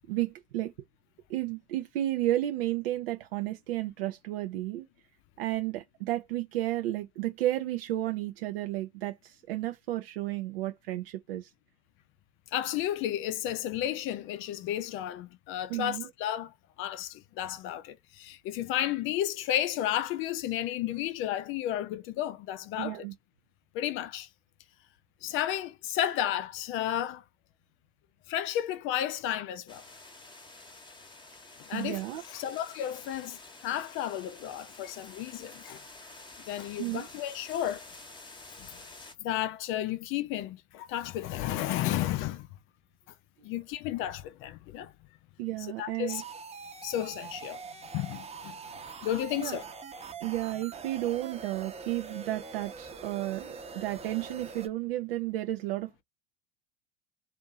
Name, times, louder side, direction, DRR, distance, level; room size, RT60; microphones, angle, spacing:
voice 1, 0.1-0.7 1.3-4.9 5.4-11.5 15.7-16.1 22.8-23.1 31.7-32.2 36.8-37.1 45.4-46.2 49.4-49.6 50.2-56.0, right 15 dB, 70° right, 0.5 m, -32 dB
voice 2, 12.5-23.1 23.7-24.3 25.2-27.2 28.3-29.8 31.7-32.0 32.3-35.8 36.5-37.8 39.2-42.5 43.4-44.9 45.6-46.2 46.8-47.6 47.9-48.6 48.9-49.7, left 12 dB, 45° left, 0.4 m, -32 dB
sound 1, 29.7-39.1, left 3 dB, 15° left, 0.9 m, -49 dB
sound 2, 46.1-54.7, right 5 dB, 20° right, 0.8 m, -44 dB
2.6 x 2.4 x 2.6 m
hypercardioid pair, 80°, 30 cm